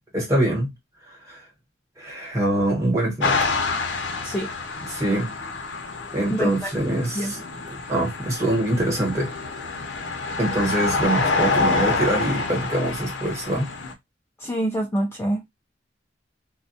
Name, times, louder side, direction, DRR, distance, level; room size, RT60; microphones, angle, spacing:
voice 1, 0.1-0.7 1.3-1.4 2.0-3.5 4.9-5.3 6.1-7.4 7.7-9.3 10.4-13.7, right 1 dB, 15° right, 1.1 m, -24 dB
sound 1, 3.2-13.9, left 3 dB, 70° left, 0.6 m, -27 dB
voice 2, 6.3-6.7 7.1-7.3 14.4-15.5, right 1 dB, 15° left, 0.3 m, -26 dB
2.3 x 2.2 x 2.6 m
head